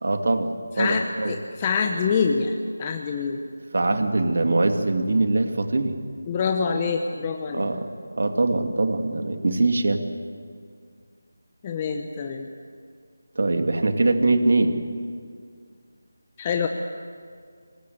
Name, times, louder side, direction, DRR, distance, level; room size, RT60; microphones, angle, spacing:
voice 1, 0.0-1.4 3.7-6.0 7.5-7.9 8.2-10.0 13.4-14.8, right 2 dB, 60° right, 6 dB, 2.5 m, -22 dB
voice 2, 0.8-3.4 6.3-7.7 11.6-12.5 16.4-16.7, left 5 dB, 20° left, 4 dB, 1.0 m, -25 dB
25.5 x 21.0 x 8.0 m, 2.1 s
figure-of-eight pair, 170°, 0 cm